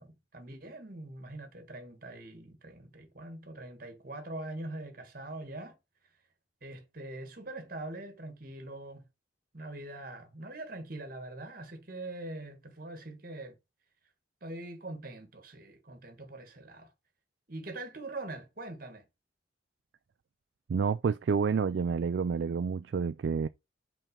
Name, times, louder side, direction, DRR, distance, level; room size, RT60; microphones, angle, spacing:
voice 1, 0.0-5.8 6.6-9.0 9.5-13.6 14.4-16.9 17.5-19.1, right 2 dB, 45° right, 1.6 m, -43 dB
voice 2, 20.7-23.5, right 5 dB, 65° right, 0.3 m, -29 dB
5.7 x 4.3 x 5.3 m
head